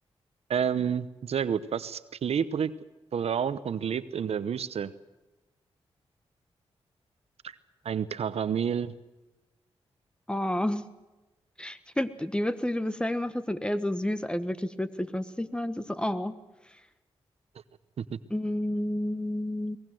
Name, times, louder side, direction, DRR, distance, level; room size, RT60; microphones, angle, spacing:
voice 1, 0.5-2.7 3.1-4.9 7.8-8.9 18.0-18.2, right 7 dB, 75° right, 15 dB, 0.9 m, -29 dB
voice 2, 10.3-10.8 11.6-16.3 18.3-19.8, left 1 dB, 10° left, 12 dB, 1.4 m, -30 dB
22.5 x 19.5 x 7.8 m, 1.1 s
cardioid pair, 55°, 11 cm